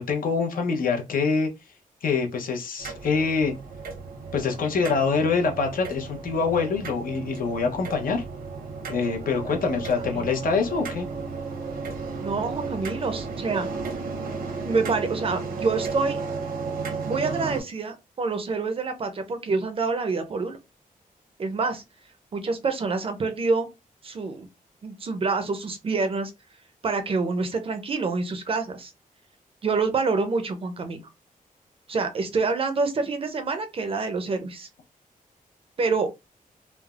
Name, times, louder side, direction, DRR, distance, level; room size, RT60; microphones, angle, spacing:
voice 1, 0.0-1.5 2.0-3.5 4.3-8.2 8.9-11.1, left 5 dB, 70° left, 0.7 m, -25 dB
sound 1, 2.8-17.6, right 4 dB, 85° right, 0.8 m, -34 dB
voice 2, 12.2-13.7 14.6-16.2 17.1-20.6 21.4-21.8 22.3-23.7 24.0-24.5 24.8-26.3 26.8-28.9 29.6-31.0 31.9-34.7 35.8-36.1, right 4 dB, 40° right, 0.5 m, -27 dB
3.2 x 2.0 x 2.3 m
wide cardioid pair, 155°, 15 cm